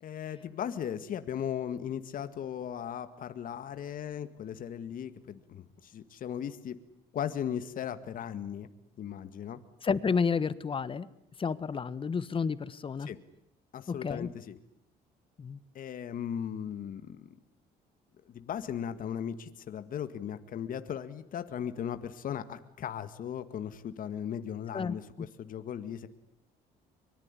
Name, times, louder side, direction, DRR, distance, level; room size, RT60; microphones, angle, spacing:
voice 1, 0.0-6.8 7.1-8.7 9.0-9.6 13.0-13.2 13.7-14.6 15.7-17.3 18.3-26.1, left 9 dB, 55° left, 11 dB, 2.0 m, -37 dB
voice 2, 9.8-11.1 11.4-13.1 13.9-14.3 15.4-15.6 24.7-25.3, left 5 dB, 30° left, 16 dB, 1.5 m, -31 dB
24.5 x 23.5 x 9.9 m, 0.71 s
cardioid pair, 110°, 17 cm